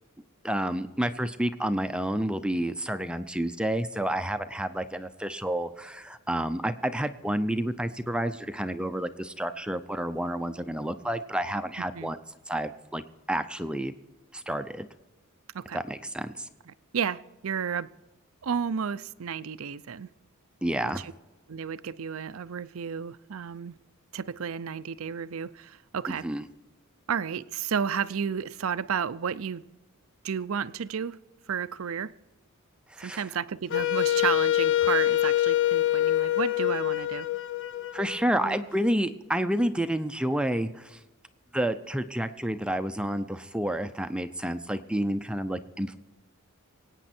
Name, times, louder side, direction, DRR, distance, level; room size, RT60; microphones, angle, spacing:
voice 1, 0.4-12.2 12.5-13.0 13.3-13.9 14.3-14.9 15.7-16.5 20.6-21.0 26.2-26.5 32.9-33.3 37.9-41.0 41.5-46.0, right 1 dB, 5° right, 0.6 m, -29 dB
voice 2, 16.9-17.9 18.4-20.1 21.0-21.1 21.5-23.8 24.1-26.3 27.1-29.6 30.2-31.2 31.5-32.1 33.0-37.3, right 7 dB, 65° right, 0.5 m, -32 dB
Wind instrument woodwind instrument, 33.7-38.6, left 13 dB, 60° left, 0.5 m, -25 dB
24.5 x 9.1 x 4.4 m
head